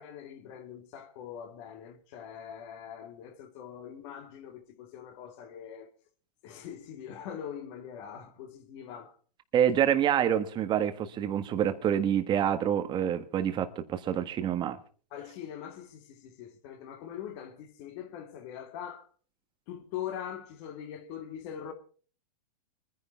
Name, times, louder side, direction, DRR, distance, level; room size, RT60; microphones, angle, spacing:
voice 1, 0.0-5.9 6.4-9.2 15.1-19.1 19.7-21.7, left 9 dB, 45° left, 2.5 m, -42 dB
voice 2, 9.5-14.8, right 9 dB, 20° right, 1.5 m, -27 dB
24.0 x 10.5 x 4.5 m
hypercardioid pair, 145°, 21 cm